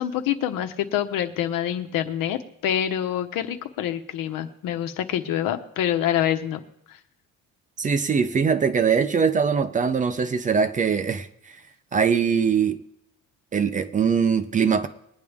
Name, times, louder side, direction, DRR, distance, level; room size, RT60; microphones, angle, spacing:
voice 1, 0.0-6.6 6.9-7.0, left 10 dB, 75° left, 1.2 m, -26 dB
voice 2, 7.8-11.6 11.9-12.8 13.5-14.9, right 6 dB, 25° right, 0.5 m, -22 dB
21.5 x 9.7 x 3.5 m
cardioid pair, 175°, 33 cm